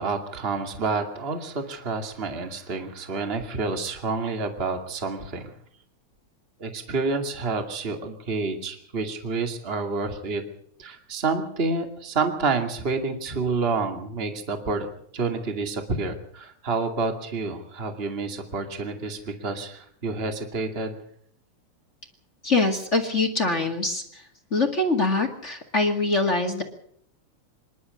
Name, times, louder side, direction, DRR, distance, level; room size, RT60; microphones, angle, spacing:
voice 1, 0.0-5.5 6.6-10.4 10.8-14.9 15.1-21.0, right 4 dB, 20° right, 5 dB, 2.4 m, -29 dB
voice 2, 22.4-24.2 24.5-26.6, left 3 dB, 25° left, 5 dB, 2.0 m, -24 dB
26.5 x 12.0 x 8.6 m, 0.65 s
omnidirectional pair, 3.3 m